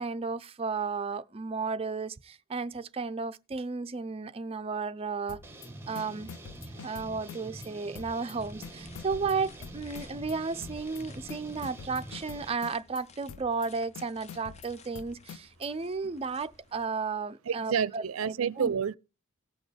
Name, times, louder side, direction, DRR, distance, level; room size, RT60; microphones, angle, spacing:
voice 1, 0.0-5.4 5.9-6.3 6.8-18.7, right 4 dB, 30° right, 0.5 m, -34 dB
sound 1, 5.3-5.7 5.9-7.7 7.9-8.3 8.6-10.3 10.6-11.0 11.3-13.0 13.3-13.7 13.9-15.7, left 7 dB, 80° left, 0.5 m, -46 dB
sound 2, 5.4-12.5, right 2 dB, 10° right, 1.3 m, -46 dB
sound 3, 8.4-16.9, left 3 dB, 35° left, 0.6 m, -55 dB
voice 2, 17.5-19.0, right 7 dB, 80° right, 0.5 m, -29 dB
18.0 x 6.3 x 3.3 m
head